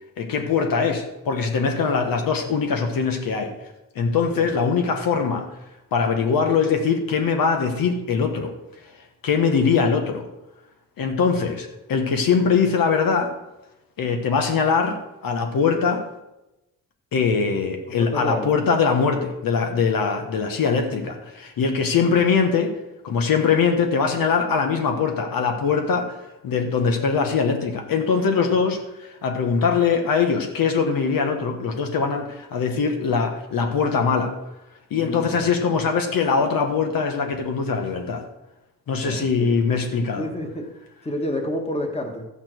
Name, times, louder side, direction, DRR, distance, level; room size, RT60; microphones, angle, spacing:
voice 1, 0.2-3.5 3.9-5.5 5.9-8.5 9.2-10.3 11.0-13.3 14.0-15.0 15.2-16.0 17.1-22.7 23.0-26.1 26.4-34.3 34.9-38.2 38.9-40.3, left 5 dB, 90° left, 5 dB, 1.5 m, -22 dB
voice 2, 18.0-18.5 34.9-35.5 38.9-39.6 40.2-40.7 41.0-42.3, left 1 dB, 20° left, 4 dB, 1.6 m, -29 dB
12.5 x 8.8 x 4.6 m, 0.96 s
cardioid pair, 110°, 34 cm